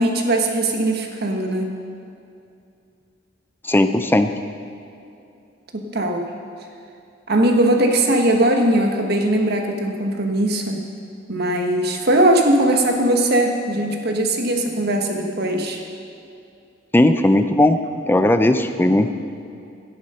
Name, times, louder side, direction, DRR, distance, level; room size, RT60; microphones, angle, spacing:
voice 1, 0.0-1.7 5.7-6.3 7.3-10.8 11.3-15.8, right 1 dB, 55° right, 3 dB, 1.4 m, -19 dB
voice 2, 3.6-4.3 16.9-17.8 18.1-19.1, left 1 dB, 10° left, 8 dB, 0.5 m, -16 dB
13.0 x 10.5 x 5.6 m, 2.6 s
head